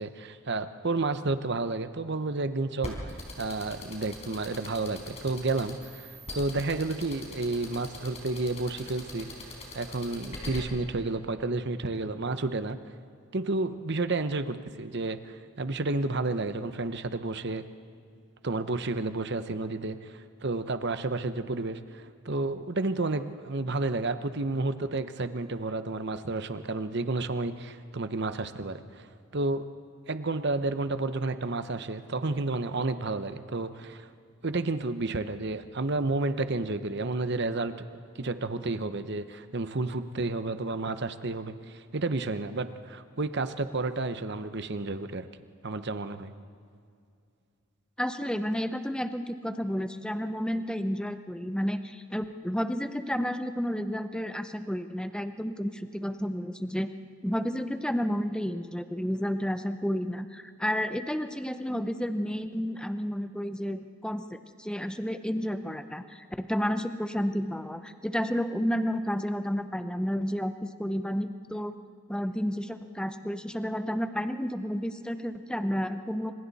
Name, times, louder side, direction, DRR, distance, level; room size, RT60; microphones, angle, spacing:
voice 1, 0.0-9.3 9.7-12.8 13.3-17.6 18.4-29.1 29.3-29.6 30.1-34.1 34.4-37.9 38.2-45.3 45.6-46.3, right 2 dB, 50° right, 10 dB, 0.9 m, -31 dB
sound 1, 2.8-10.6, left 2 dB, 30° left, 4.6 m, -41 dB
voice 2, 48.0-56.9 57.2-71.7 72.1-76.3, equal, 5° left, 9 dB, 0.7 m, -31 dB
28.0 x 26.5 x 4.2 m, 2.4 s
head